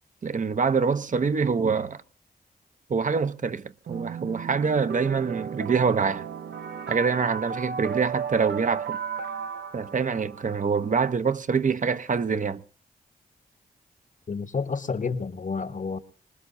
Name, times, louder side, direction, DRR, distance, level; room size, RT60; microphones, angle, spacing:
voice 1, 0.2-2.0 2.9-6.3 6.9-9.0 9.7-12.6, right 5 dB, 50° right, 0.7 m, -25 dB
sound 1, 3.9-10.9, right 7 dB, 90° right, 0.8 m, -34 dB
voice 2, 14.3-16.0, left 5 dB, 50° left, 1.2 m, -30 dB
25.0 x 19.5 x 2.7 m
cardioid pair, 65°, 17 cm